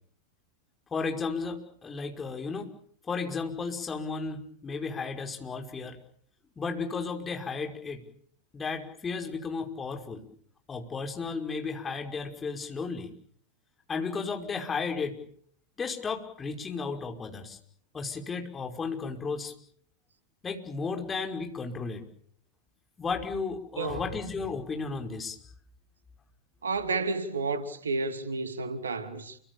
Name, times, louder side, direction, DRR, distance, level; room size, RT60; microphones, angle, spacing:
voice 1, 0.9-2.7 3.0-6.0 6.6-8.0 8.5-10.3 10.7-13.1 13.9-15.2 15.8-17.6 17.9-19.5 20.4-22.0 23.0-25.4, left 4 dB, 20° left, 5.5 m, -34 dB
voice 2, 23.8-24.1 26.6-29.4, right 3 dB, 70° right, 2.8 m, -31 dB
29.5 x 24.5 x 7.1 m
figure-of-eight pair, 90°, 0 cm